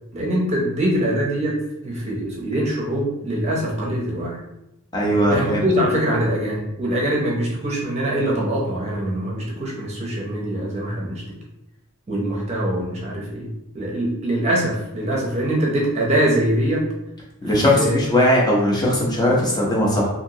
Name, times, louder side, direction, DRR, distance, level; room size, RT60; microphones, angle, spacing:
voice 1, 0.1-1.6 1.8-4.4 5.3-11.2 12.1-16.9 17.8-18.0, right 1 dB, 30° right, -3 dB, 0.6 m, -23 dB
voice 2, 4.9-5.6 17.4-20.1, left 1 dB, 20° left, -4 dB, 0.6 m, -19 dB
2.9 x 2.6 x 2.7 m, 0.87 s
head